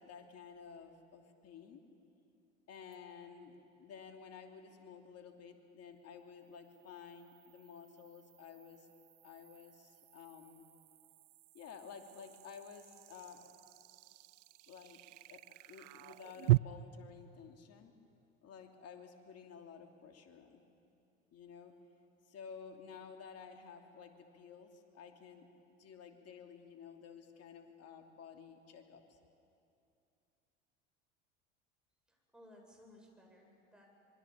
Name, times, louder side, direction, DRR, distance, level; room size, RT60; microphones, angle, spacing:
voice 1, 0.0-1.8 2.7-8.9 9.2-10.7 11.5-13.5 14.7-15.0 15.3-17.9 18.4-20.6 21.3-21.7 22.3-29.2, left 6 dB, 45° left, 4 dB, 2.9 m, -53 dB
sound 1, 2.9-3.0 6.4-16.6, right 20 dB, 75° right, 0.5 m, -40 dB
voice 2, 32.1-33.9, left 1 dB, ahead, -1 dB, 7.8 m, -60 dB
26.0 x 23.5 x 7.3 m, 2.6 s
hypercardioid pair, 75°, 35 cm